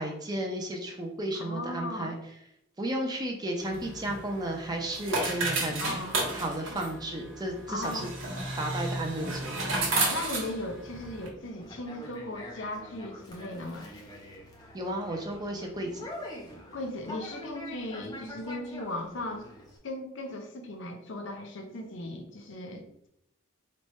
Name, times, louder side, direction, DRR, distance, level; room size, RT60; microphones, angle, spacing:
voice 1, 0.0-2.2 2.8-8.1 8.6-9.6 14.7-16.1, right 1 dB, 20° right, 2 dB, 0.5 m, -33 dB
voice 2, 1.3-2.2 5.8-6.2 7.7-8.1 9.9-13.9 16.7-19.5 19.8-23.1, left 1 dB, 65° left, 4 dB, 0.6 m, -37 dB
sound 1, 3.6-11.3, right 2 dB, 75° right, 1.1 m, -33 dB
Conversation, 11.4-19.8, left 1 dB, 20° left, 0.6 m, -45 dB
3.2 x 2.2 x 4.1 m, 0.78 s
head